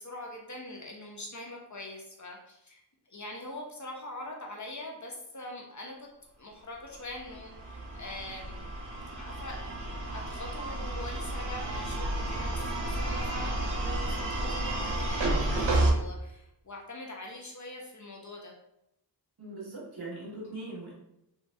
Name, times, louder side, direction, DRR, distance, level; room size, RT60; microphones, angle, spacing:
voice 1, 0.0-6.1 6.4-8.7 8.9-9.7 10.1-18.5, left 1 dB, 45° left, -1 dB, 0.6 m, -43 dB
sound 1, 7.1-15.9, right 1 dB, 90° right, 0.6 m, -31 dB
voice 2, 19.4-20.9, right 2 dB, 60° right, -5 dB, 1.3 m, -40 dB
3.1 x 2.5 x 2.6 m, 0.83 s
wide cardioid pair, 65°, 42 cm